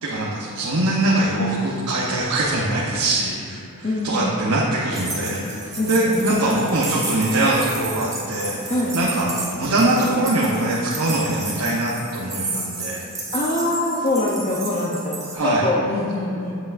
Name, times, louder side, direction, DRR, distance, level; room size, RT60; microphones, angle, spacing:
voice 1, 0.0-8.6 8.9-13.0 15.3-15.7, right 1 dB, 90° right, -5 dB, 0.9 m, -22 dB
voice 2, 3.8-4.5 5.8-6.2 8.7-8.9 13.3-16.5, left 1 dB, 30° left, -4 dB, 0.7 m, -24 dB
sound 1, 4.9-7.9 8.3-11.3, left 2 dB, 70° left, 0.8 m, -42 dB
sound 2, 4.9-15.4, right 3 dB, 15° right, 1.1 m, -32 dB
8.0 x 7.5 x 2.6 m, 2.5 s
head